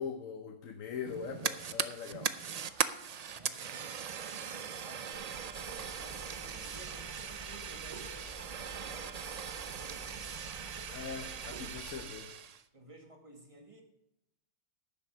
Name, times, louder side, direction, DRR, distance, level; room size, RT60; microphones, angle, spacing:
voice 1, 0.0-2.3 10.9-12.3, left 6 dB, 80° left, 5 dB, 1.2 m, -41 dB
Fire, 1.1-12.6, right 7 dB, 70° right, 0.3 m, -39 dB
voice 2, 3.3-10.6 11.4-11.6 12.7-13.8, right 2 dB, 25° right, 3 dB, 1.7 m, -55 dB
sound 1, 5.1-12.0, right 1 dB, 30° left, 5.1 m, -49 dB
10.5 x 7.0 x 6.7 m, 0.85 s
omnidirectional pair, 1.3 m